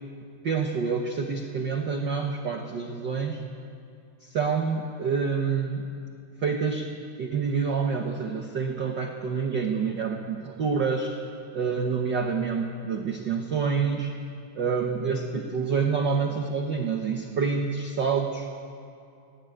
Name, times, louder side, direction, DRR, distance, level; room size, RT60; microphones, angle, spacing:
voice 1, 0.4-3.4 4.2-5.9 6.4-6.9 7.2-11.2 11.5-14.1 14.5-18.5, right 5 dB, 60° right, 3 dB, 1.1 m, -27 dB
18.5 x 16.0 x 9.1 m, 2.5 s
omnidirectional pair, 3.6 m